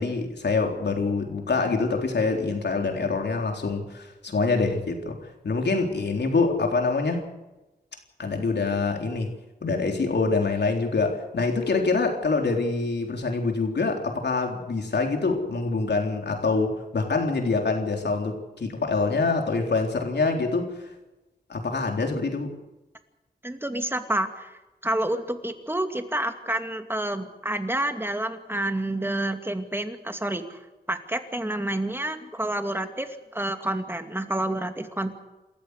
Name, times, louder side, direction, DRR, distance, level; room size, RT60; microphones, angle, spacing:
voice 1, 0.0-5.2 5.4-7.2 8.2-9.3 9.6-20.7 21.5-22.6, left 3 dB, 80° left, 3.8 m, -25 dB
voice 2, 23.4-30.6 30.9-35.1, right 1 dB, 15° right, 2.4 m, -29 dB
28.0 x 14.0 x 8.2 m
wide cardioid pair, 80°, 17 cm